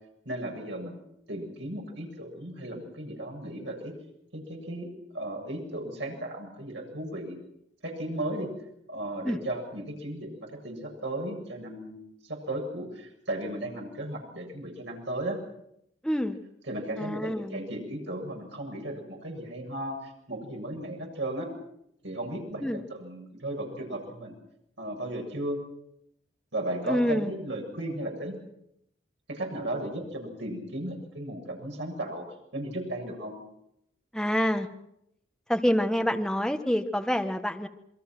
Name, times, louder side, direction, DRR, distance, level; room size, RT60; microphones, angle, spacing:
voice 1, 0.2-1.0 1.3-3.9 4.3-4.9 5.1-7.4 7.8-8.5 8.9-10.3 10.6-12.0 12.2-15.4 16.7-21.5 22.0-24.4 24.8-25.6 26.5-28.4 29.3-32.2 32.5-33.3, right 1 dB, 70° right, 1 dB, 7.6 m, -35 dB
voice 2, 16.0-16.4 17.0-17.6 22.6-22.8 26.8-27.4 34.1-34.7 35.5-37.7, equal, 5° left, 5 dB, 1.3 m, -27 dB
27.5 x 22.5 x 6.1 m, 0.76 s
head